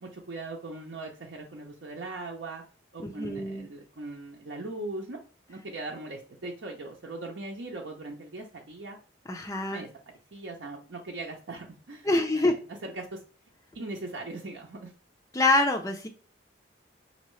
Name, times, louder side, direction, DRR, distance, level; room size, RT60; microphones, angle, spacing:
voice 1, 0.0-2.6 2.9-5.2 5.5-9.0 9.7-9.9 10.3-13.2 13.7-14.9, right 2 dB, 70° right, 0 dB, 0.6 m, -39 dB
voice 2, 3.0-3.7 9.3-9.8 12.1-12.5 15.3-16.1, left 2 dB, 15° left, 4 dB, 0.4 m, -25 dB
5.3 x 2.8 x 3.1 m, 0.37 s
head